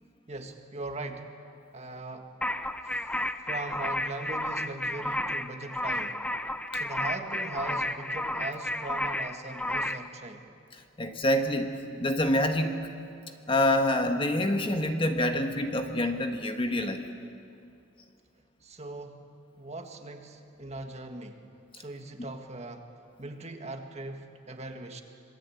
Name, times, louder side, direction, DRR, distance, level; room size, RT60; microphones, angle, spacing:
voice 1, 0.3-1.3 1.7-2.3 2.7-6.3 6.7-10.5 18.6-19.2 19.6-21.5 21.7-22.9 23.2-25.0, right 2 dB, 35° right, 5 dB, 1.8 m, -40 dB
sound 1, 2.4-10.1, left 1 dB, 5° left, 0.6 m, -32 dB
voice 2, 11.0-11.7 12.0-12.8 13.5-17.0, left 1 dB, 25° left, 5 dB, 1.5 m, -26 dB
26.0 x 22.0 x 8.6 m, 2.5 s
head